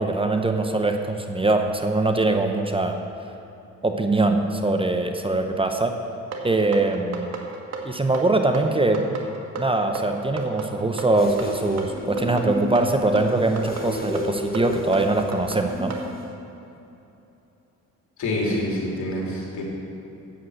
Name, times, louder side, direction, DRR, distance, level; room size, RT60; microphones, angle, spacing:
voice 1, 0.0-3.0 3.8-6.0 6.4-7.3 7.8-9.2 9.6-16.0, right 2 dB, 20° right, 5 dB, 0.7 m, -22 dB
sound 1, 6.3-16.1, right 3 dB, 60° right, 1.5 m, -33 dB
sound 2, 11.2-16.3, left 2 dB, 30° left, 1.4 m, -33 dB
voice 2, 18.2-19.6, left 1 dB, 70° left, -3 dB, 2.8 m, -26 dB
8.7 x 7.4 x 7.7 m, 2.9 s
cardioid pair, 90°, 30 cm